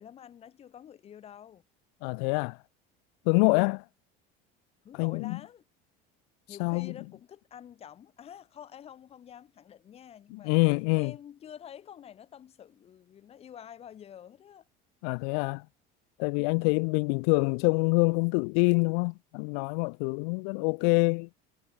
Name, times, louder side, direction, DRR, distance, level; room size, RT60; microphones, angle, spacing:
voice 1, 0.0-1.6 4.8-5.6 6.5-10.5 11.0-14.7 16.4-16.9, left 9 dB, 30° left, 7.1 m, -48 dB
voice 2, 2.0-2.6 3.3-3.8 5.0-5.4 6.6-6.9 10.3-11.1 15.0-15.7 16.2-21.3, left 40 dB or more, 80° left, 0.5 m, -26 dB
cardioid pair, 175°, 21 cm